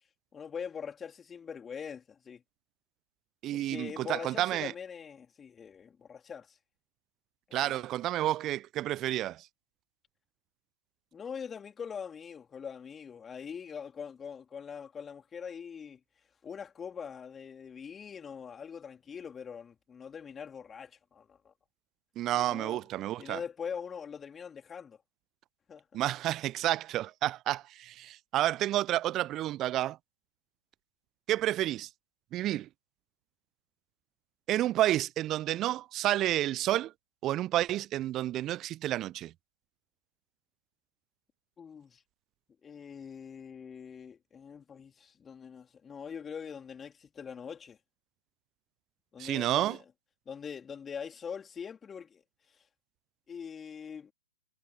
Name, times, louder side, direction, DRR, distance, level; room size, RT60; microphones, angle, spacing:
voice 1, 0.3-2.4 3.5-6.6 7.5-7.8 11.1-16.0 16.4-21.5 22.4-22.8 23.2-25.0 25.7-26.0 41.6-42.0 42.6-47.8 49.1-49.8 50.3-52.7 53.3-54.1, left 7 dB, 15° left, 3.4 m, -43 dB
voice 2, 3.4-4.7 7.5-9.5 22.2-23.4 25.9-30.0 31.3-31.9 32.3-32.7 34.5-36.9 37.2-39.3 49.2-49.8, right 14 dB, 30° right, 0.3 m, -30 dB
figure-of-eight pair, 110°, 0 cm